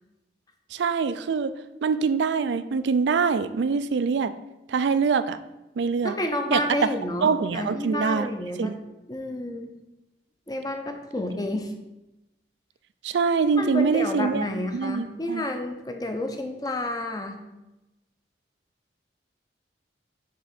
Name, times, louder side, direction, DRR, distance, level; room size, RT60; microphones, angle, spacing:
voice 1, 0.7-1.5 1.8-4.3 4.7-5.4 5.8-6.1 6.5-6.6 7.2-8.3 8.6-8.8 13.0-14.5 14.7-15.5, right 5 dB, 70° right, 13 dB, 0.4 m, -24 dB
voice 2, 6.0-8.7 9.1-9.7 10.5-11.7 13.6-17.4, left 1 dB, 20° left, 5 dB, 0.6 m, -30 dB
5.7 x 3.7 x 5.8 m, 0.98 s
head